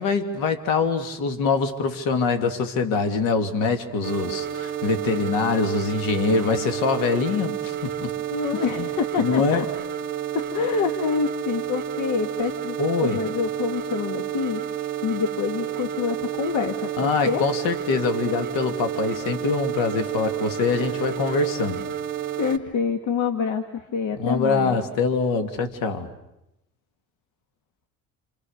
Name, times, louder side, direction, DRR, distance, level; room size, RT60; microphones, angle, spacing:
voice 1, 0.0-8.1 8.8-8.9 9.2-9.6 12.8-13.2 17.0-21.8 24.2-26.1, left 4 dB, 75° left, 7 dB, 2.6 m, -24 dB
sound 1, 4.0-22.6, right 10 dB, 35° right, 2.1 m, -30 dB
voice 2, 8.3-9.7 10.3-17.5 20.7-21.0 22.4-24.8, left 6 dB, 60° left, 7 dB, 1.7 m, -27 dB
29.0 x 27.5 x 6.6 m, 0.87 s
cardioid pair, 120°, 33 cm